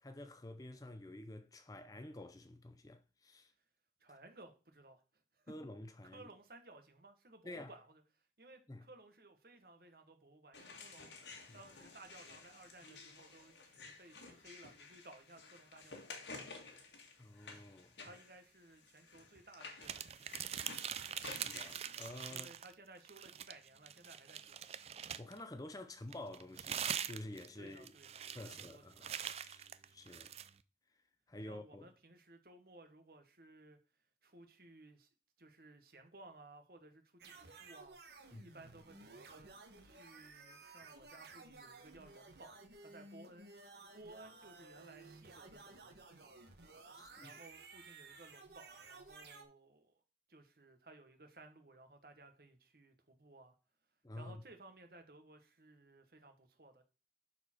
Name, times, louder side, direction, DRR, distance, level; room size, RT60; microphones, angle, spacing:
voice 1, 0.0-3.5 5.5-6.3 7.4-7.7 8.7-8.8 11.5-11.6 17.2-18.2 21.5-22.6 25.0-27.9 28.3-29.1 29.3-30.3 31.3-31.9 38.3-38.4 46.9-47.3 54.0-54.4, left 1 dB, 20° left, 0.6 m, -50 dB
voice 2, 4.0-5.5 6.1-16.5 18.0-20.5 22.3-24.7 27.6-29.1 31.5-33.8 34.2-35.1 35.4-39.5 39.8-46.0 47.2-50.0 50.3-53.5 54.1-56.8, right 2 dB, 55° right, 1.4 m, -59 dB
sound 1, 10.5-22.3, left 4 dB, 90° left, 1.8 m, -53 dB
sound 2, 19.8-22.7 23.0-25.4 26.1-30.5, right 9 dB, 35° right, 0.4 m, -43 dB
sound 3, 37.2-49.4, right 3 dB, 75° right, 1.4 m, -56 dB
11.5 x 4.4 x 4.5 m
head